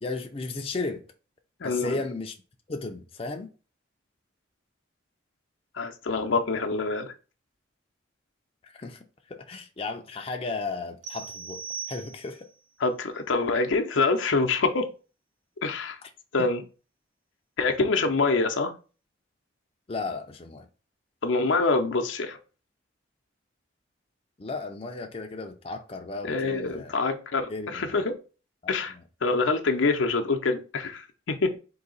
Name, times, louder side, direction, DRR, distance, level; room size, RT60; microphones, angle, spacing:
voice 1, 0.0-1.0 1.6-2.4 2.7-3.5 8.6-11.6 11.9-12.5 16.0-16.1 16.4-16.5 19.9-20.7 24.4-26.9 27.5-28.0 28.9-29.0, left 3 dB, 30° left, 0.5 m, -35 dB
voice 2, 1.6-1.9 5.7-7.1 12.8-14.9 15.6-16.0 16.3-16.6 17.6-18.7 21.2-22.4 26.2-28.2 28.7-28.9 29.2-31.6, left 3 dB, 85° left, 0.6 m, -25 dB
sound 1, 11.0-12.6, right 6 dB, 75° right, 0.8 m, -39 dB
3.9 x 2.8 x 3.9 m
head